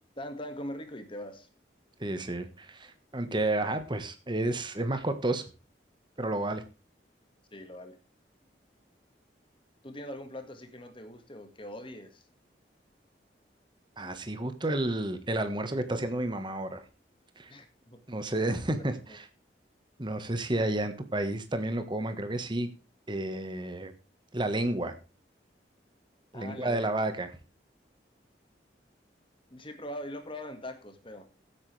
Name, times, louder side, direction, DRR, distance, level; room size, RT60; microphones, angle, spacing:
voice 1, 0.2-1.5 7.5-8.0 9.8-12.2 17.5-18.0 19.1-19.2 26.3-26.9 29.5-31.3, left 1 dB, 30° left, 7 dB, 1.9 m, -42 dB
voice 2, 2.0-5.4 6.2-6.6 14.0-16.8 17.4-17.5 18.1-19.2 20.0-22.7 23.1-23.9 24.3-25.0 26.3-27.3, right 1 dB, 25° right, 8 dB, 1.4 m, -31 dB
15.5 x 8.7 x 3.4 m, 0.32 s
head